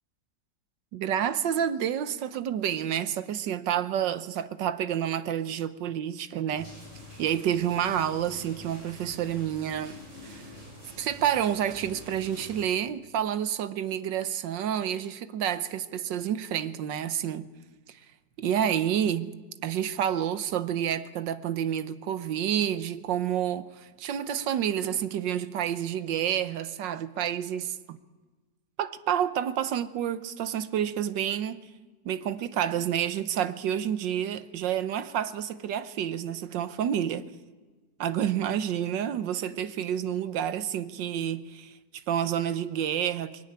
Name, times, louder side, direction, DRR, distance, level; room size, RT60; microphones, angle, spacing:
voice 1, 0.9-6.7 7.2-10.0 10.2-10.5 11.0-17.5 17.9-18.0 18.4-19.3 19.6-28.0 28.8-31.7 32.0-37.3 38.0-43.4, right 9 dB, 85° right, 1.6 m, -29 dB
sound 1, 6.6-12.7, equal, 40° right, 7.1 m, -46 dB
22.5 x 13.5 x 9.9 m
omnidirectional pair, 1.9 m